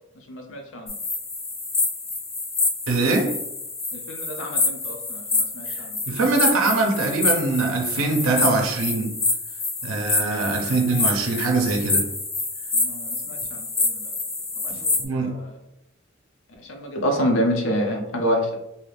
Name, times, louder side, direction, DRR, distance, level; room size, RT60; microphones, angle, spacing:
voice 1, 0.3-0.9 3.9-6.0 12.7-14.0 14.6-14.9 15.2-15.5 16.7-18.6, equal, 65° left, 0.6 m, -27 dB
sound 1, 0.9-15.0, left 3 dB, 15° left, 0.3 m, -27 dB
voice 2, 2.9-3.4 6.1-9.1 9.8-12.1 14.7-15.4, right 3 dB, 75° right, 0.5 m, -23 dB
2.7 x 2.4 x 3.2 m
head